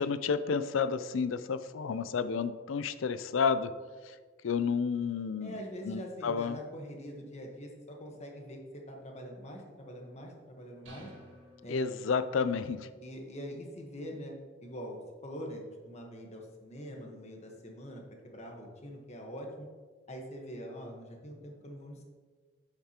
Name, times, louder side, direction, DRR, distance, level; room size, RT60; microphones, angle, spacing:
voice 1, 0.0-3.7 4.0-4.2 4.4-5.6 5.8-6.6 11.7-12.9, left 5 dB, 80° left, 12 dB, 0.4 m, -31 dB
voice 2, 5.4-11.1 11.6-11.8 12.9-14.3 14.6-19.7 20.1-22.0, equal, 35° left, 1 dB, 1.2 m, -44 dB
sound 1, 10.9-12.5, equal, 80° right, 1.5 m, -54 dB
8.0 x 6.8 x 2.9 m, 1.4 s
head